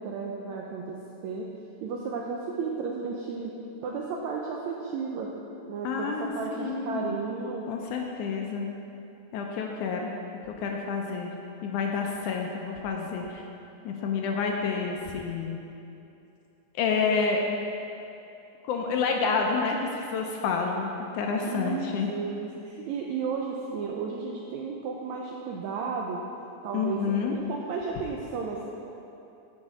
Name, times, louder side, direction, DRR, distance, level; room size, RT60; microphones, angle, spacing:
voice 1, 0.0-1.5 1.8-3.5 3.8-5.3 5.7-7.7 21.5-26.2 26.6-28.7, right 5 dB, 85° right, -1 dB, 1.6 m, -33 dB
voice 2, 5.8-7.1 7.7-8.7 9.3-10.1 10.4-11.3 11.6-13.4 13.8-15.6 16.8-17.4 18.6-20.9 21.1-22.1 26.7-27.4, left 5 dB, 80° left, 1 dB, 1.9 m, -29 dB
10.5 x 5.3 x 4.9 m, 2.8 s
omnidirectional pair, 3.9 m